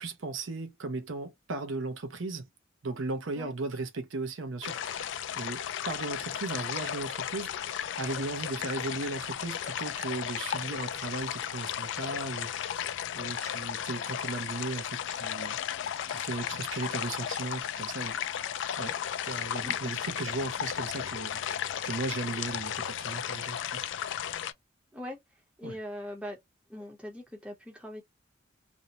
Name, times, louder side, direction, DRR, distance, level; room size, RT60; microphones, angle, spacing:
voice 1, 0.0-2.5 2.8-7.5 8.0-12.8 13.2-15.6 16.1-18.5 18.8-19.0 19.3-23.9 25.6-25.8, right 3 dB, 75° right, 0.6 m, -37 dB
sound 1, 4.6-24.5, left 9 dB, 65° left, 0.3 m, -35 dB
voice 2, 19.6-19.9 24.9-25.2 25.6-26.4 26.7-28.0, left 1 dB, 5° right, 0.7 m, -41 dB
2.6 x 2.1 x 2.8 m
head